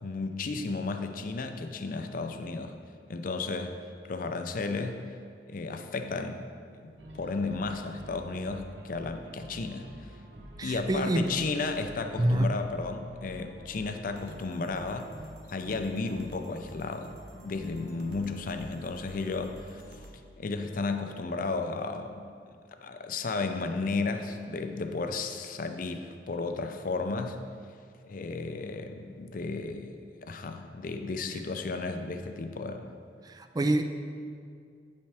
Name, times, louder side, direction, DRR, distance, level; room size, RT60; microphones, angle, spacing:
voice 1, 0.0-2.7 3.1-3.7 4.1-5.0 5.5-6.5 6.8-10.1 10.6-15.1 15.5-19.8 20.4-22.2 22.8-27.4 28.0-29.9 30.2-32.9, left 3 dB, 50° left, 7 dB, 0.5 m, -33 dB
sound 1, 7.0-20.1, right 1 dB, 90° right, 0.7 m, -48 dB
voice 2, 10.6-11.3 12.2-12.5 33.2-33.8, right 1 dB, 20° right, 8 dB, 0.3 m, -26 dB
8.7 x 5.5 x 3.4 m, 2.2 s
head